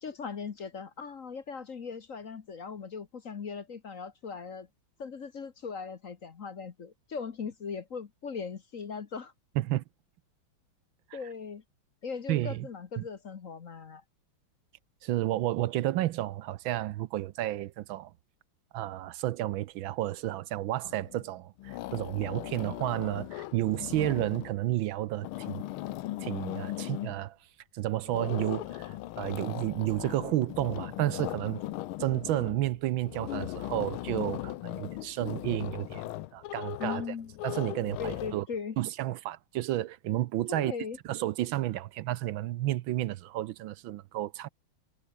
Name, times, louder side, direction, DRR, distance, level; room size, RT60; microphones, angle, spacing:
voice 1, 0.0-4.7 5.0-9.3 11.1-11.6 12.0-14.0 36.8-37.3 38.0-38.8 40.5-41.0, left 5 dB, 45° left, 1.4 m, -39 dB
voice 2, 12.3-12.7 13.0-13.1 15.0-18.1 18.7-25.6 26.2-27.4 27.7-31.6 32.0-36.0 36.3-37.0 37.4-38.5 38.8-40.7 41.0-44.5, right 15 dB, 75° right, 1.4 m, -31 dB
sound 1, 20.9-21.3 21.6-24.6 25.1-27.2 28.0-38.3, left 15 dB, 80° left, 1.5 m, -38 dB
omnidirectional pair, 2.3 m